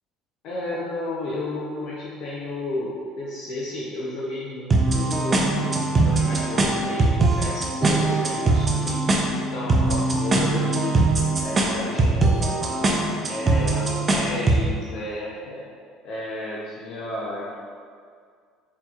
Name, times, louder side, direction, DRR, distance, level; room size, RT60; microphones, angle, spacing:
voice 1, 0.4-9.2 9.5-11.0 11.4-12.9 13.3-15.7 16.0-17.6, left 2 dB, 60° left, -5 dB, 0.5 m, -32 dB
sound 1, 4.7-14.7, right 2 dB, 25° right, 0.4 m, -21 dB
4.3 x 2.9 x 2.3 m, 2.1 s
supercardioid pair, 110°, 0 cm